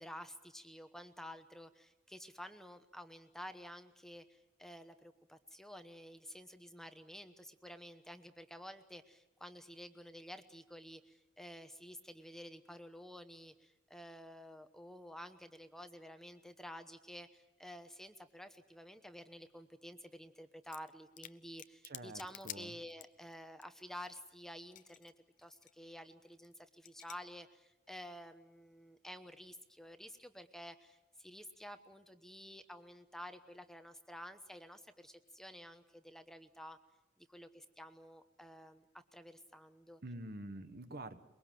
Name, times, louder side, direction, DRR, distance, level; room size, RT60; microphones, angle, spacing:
voice 1, 0.0-25.1 25.4-36.8 37.2-40.0, equal, ahead, 8 dB, 1.0 m, -51 dB
sound 1, 20.6-20.9 21.2-23.3 23.6-23.7 23.9-25.1 25.4-25.7 26.3-26.5 26.9-27.2, left 11 dB, 40° left, 0.7 m, -50 dB
voice 2, 21.8-22.7 40.0-41.2, right 1 dB, 50° right, 10 dB, 1.3 m, -47 dB
23.5 x 22.5 x 7.6 m, 0.94 s
head